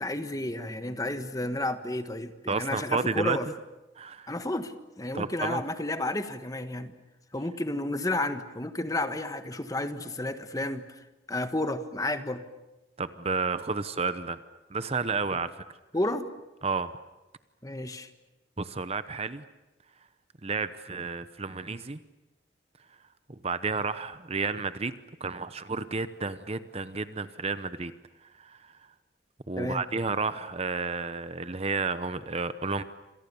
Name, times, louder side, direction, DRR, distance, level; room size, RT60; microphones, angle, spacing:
voice 1, 0.0-3.5 4.3-6.9 7.3-11.0 11.3-12.4 15.9-16.3 17.6-18.1 29.6-29.9, left 1 dB, 20° left, 9 dB, 1.4 m, -31 dB
voice 2, 2.5-3.4 4.0-4.3 5.1-5.6 13.0-14.4 14.7-15.6 16.6-16.9 18.6-19.4 20.4-22.0 23.3-24.9 25.2-27.9 28.2-28.7 29.5-32.8, right 4 dB, 30° right, 12 dB, 0.8 m, -31 dB
28.5 x 26.5 x 7.0 m, 1.0 s
head